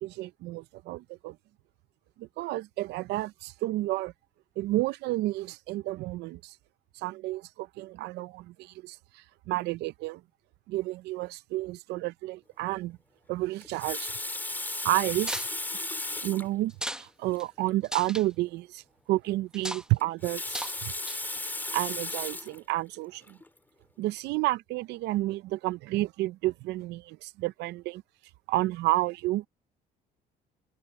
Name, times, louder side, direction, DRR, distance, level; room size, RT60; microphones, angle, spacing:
voice 1, 0.0-1.4 2.2-4.1 4.6-6.5 7.0-10.2 10.7-13.0 13.3-14.1 14.8-15.3 16.2-16.7 17.0-18.8 19.1-20.9 21.7-23.4 24.0-28.0 28.5-29.5, right 18 dB, 85° right, 0.6 m, -31 dB
Water tap faucet, 13.6-16.5 17.3-17.4 17.7-17.8 20.0-22.6 23.3-23.5, left 2 dB, 10° left, 2.6 m, -35 dB
sound 1, 15.2-15.5 16.7-17.1 17.4-17.5 17.8-18.2 19.5-19.9 20.5-20.8 21.1-21.4, right 1 dB, 5° right, 0.9 m, -35 dB
cardioid pair, 110°, 17 cm